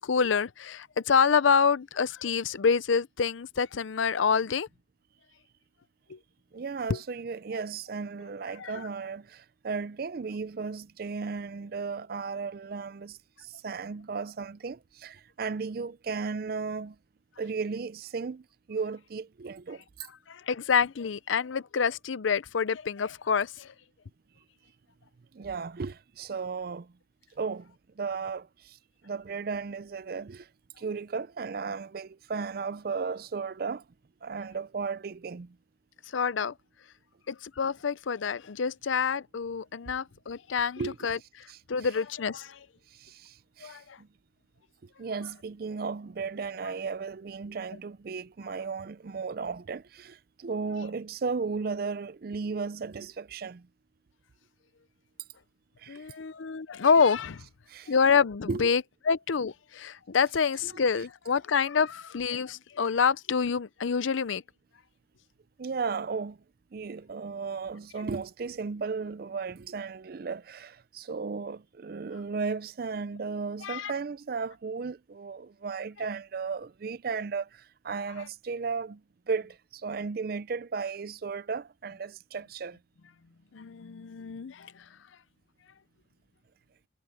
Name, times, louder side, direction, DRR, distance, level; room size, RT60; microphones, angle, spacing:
voice 1, 0.0-4.7 6.1-6.2 6.9-7.0 8.6-8.9 20.3-23.7 36.1-36.5 37.3-41.2 41.7-42.6 43.6-43.8 55.9-57.4 57.9-64.4 73.6-73.9 83.5-84.7, left 6 dB, 90° left, 0.6 m, -27 dB
voice 2, 6.5-17.0 17.4-20.1 25.3-26.9 27.4-28.8 29.0-30.5 30.8-33.8 34.2-35.6 40.8-41.1 41.5-41.6 42.9-44.1 44.8-53.7 55.8-56.1 57.7-57.9 58.5-58.7 60.6-60.7 65.6-66.4 66.7-79.0 79.3-82.8, right 5 dB, 50° right, 0.4 m, -35 dB
head